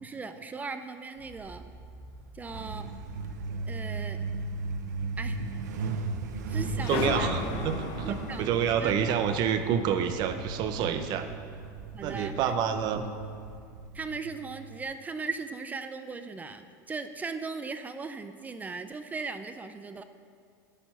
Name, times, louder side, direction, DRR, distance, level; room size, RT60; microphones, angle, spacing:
voice 1, 0.0-1.6 2.3-2.9 3.7-4.2 5.2-5.4 6.5-7.3 8.0-8.5 8.8-8.9 11.9-12.5 13.9-20.0, right 4 dB, 15° right, 9 dB, 0.4 m, -38 dB
sound 1, 1.1-13.6, right 3 dB, 65° right, 2.1 m, -48 dB
Truck, 2.5-14.8, right 4 dB, 90° right, 0.6 m, -37 dB
sound 2, 6.8-11.3, left 7 dB, 60° left, 0.8 m, -36 dB
voice 2, 6.8-11.3 12.0-13.1, right 8 dB, 50° right, 9 dB, 0.7 m, -28 dB
9.9 x 4.5 x 5.7 m, 2.2 s
supercardioid pair, 110°, 9 cm